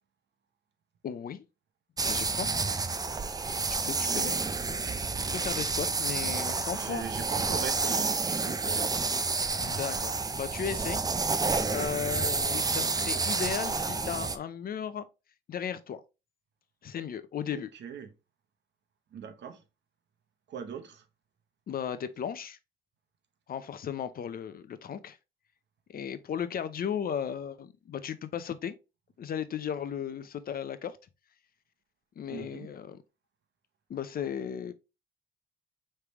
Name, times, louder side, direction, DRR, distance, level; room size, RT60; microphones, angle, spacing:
voice 1, 1.0-1.4 2.0-2.5 3.7-4.5 5.3-7.0 9.7-11.0 11.7-15.1 15.5-16.0 16.8-17.7 21.7-22.6 23.5-25.2 25.9-28.7 29.2-31.0 32.2-33.0 33.9-34.7, left 8 dB, 50° left, 0.6 m, -35 dB
sound 1, 2.0-14.4, right 4 dB, 20° right, 0.5 m, -30 dB
voice 2, 3.8-4.3 6.1-6.2 6.7-9.1 17.5-18.1 19.1-19.6 20.5-21.0 32.3-32.7, right 7 dB, 60° right, 0.9 m, -41 dB
4.9 x 3.3 x 3.0 m
cardioid pair, 90°, 20 cm